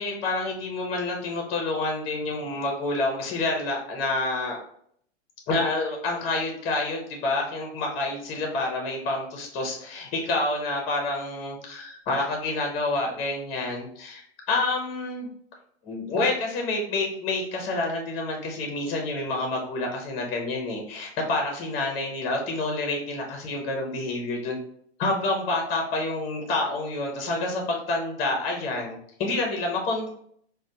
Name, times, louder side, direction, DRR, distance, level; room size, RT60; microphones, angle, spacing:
voice 1, 0.0-4.6 5.5-15.3 15.8-24.6 25.0-30.1, left 2 dB, 20° left, 1 dB, 0.5 m, -28 dB
4.1 x 2.0 x 2.5 m, 0.65 s
hypercardioid pair, 150°, 35 cm